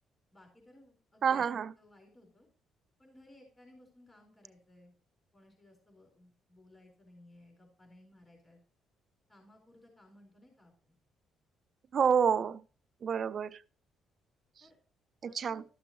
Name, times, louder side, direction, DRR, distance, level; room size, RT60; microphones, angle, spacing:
voice 1, 0.3-2.5 3.0-4.9 5.3-8.6 9.3-10.9 14.6-14.8 15.2-15.6, left 1 dB, 20° left, 4.3 m, -60 dB
voice 2, 1.2-1.7 11.9-12.6 13.0-13.6 15.2-15.6, right 7 dB, 50° right, 0.4 m, -28 dB
12.5 x 6.8 x 3.1 m
cardioid pair, 105°, 0 cm